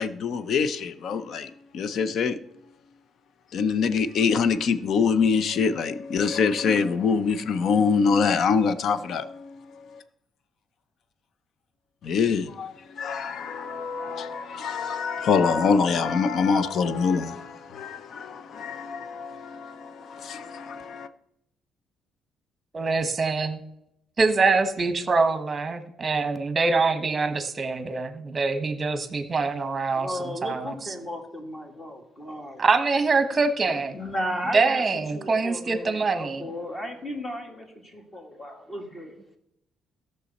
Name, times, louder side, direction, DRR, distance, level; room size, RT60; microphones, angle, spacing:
voice 1, 0.0-2.4 3.5-9.8 12.0-21.1, left 5 dB, 55° left, 0.6 m, -25 dB
voice 2, 22.7-23.6 24.2-30.8 32.6-33.9 34.5-36.4, right 4 dB, 25° right, 1.1 m, -24 dB
voice 3, 29.9-32.6 33.7-34.8 35.1-39.2, equal, 20° left, 2.0 m, -35 dB
16.5 x 6.8 x 4.2 m
cardioid pair, 140°, 0 cm